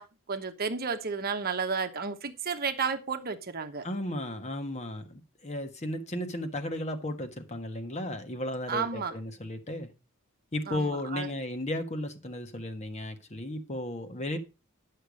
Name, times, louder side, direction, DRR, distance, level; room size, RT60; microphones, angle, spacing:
voice 1, 0.0-3.9 8.7-9.1 10.7-11.3, right 5 dB, 45° right, 1.0 m, -32 dB
voice 2, 3.8-9.9 10.5-14.4, left 1 dB, 30° left, 1.4 m, -34 dB
10.0 x 6.7 x 5.1 m
head